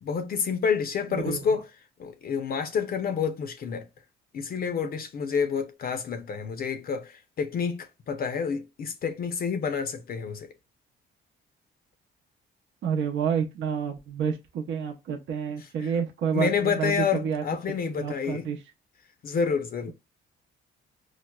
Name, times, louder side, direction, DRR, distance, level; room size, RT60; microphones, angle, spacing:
voice 1, 0.0-1.7 2.0-3.8 4.3-10.5 16.3-18.5 19.2-19.9, left 6 dB, 50° left, 0.5 m, -28 dB
voice 2, 1.1-1.4 12.8-17.4 17.8-18.6, right 7 dB, 70° right, 0.7 m, -29 dB
4.6 x 2.0 x 2.2 m
cardioid pair, 90°, 20 cm